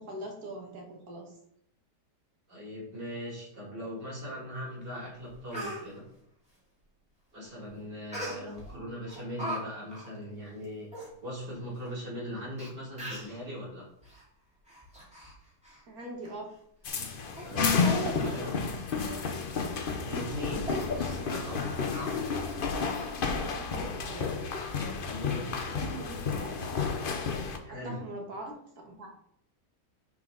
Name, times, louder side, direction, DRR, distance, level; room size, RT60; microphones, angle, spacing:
voice 1, 0.0-1.3 8.2-8.9 15.9-16.5 17.5-18.7 23.4-24.4 25.8-26.6 27.7-29.1, right 1 dB, 65° right, 0 dB, 2.1 m, -41 dB
voice 2, 2.5-6.0 7.3-10.9 11.2-13.8 17.4-18.6 20.0-21.9 24.1-24.4 25.0-25.8 27.6-28.0, equal, 90° right, -6 dB, 3.9 m, -40 dB
Speech, 4.8-4.9 5.3-5.8 8.1-8.7 9.1-9.6 9.9-10.1 10.6-10.7 10.9-11.1 11.9-12.0 12.6-12.7 13.0-13.4 14.0-14.2 14.7-15.3 15.6-15.8 16.2-16.3 16.9-17.0 17.4-17.5 17.8-18.2 18.5-18.6 19.0-19.2 19.6-19.7 20.1-20.3 20.6-20.9 21.9-22.6 23.0-23.1, right 1 dB, 5° right, 2.5 m, -39 dB
sound 1, 16.8-27.6, left 5 dB, 50° left, 0.7 m, -31 dB
9.8 x 4.6 x 3.9 m, 0.71 s
omnidirectional pair, 1.8 m